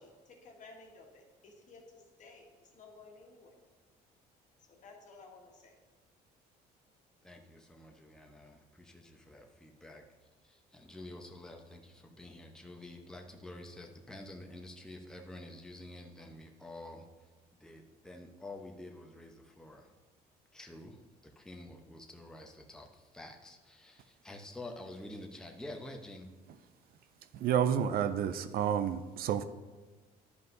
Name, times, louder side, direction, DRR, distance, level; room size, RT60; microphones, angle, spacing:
voice 1, 0.0-3.5 4.7-5.7, left 3 dB, 45° left, 0 dB, 1.6 m, -55 dB
voice 2, 7.2-10.0 10.4-17.3 17.6-19.9 20.5-26.4, left 1 dB, 5° left, 2 dB, 0.8 m, -49 dB
voice 3, 27.3-29.4, right 9 dB, 65° right, 12 dB, 0.5 m, -30 dB
11.0 x 5.3 x 2.7 m, 1.3 s
cardioid pair, 110°, 17 cm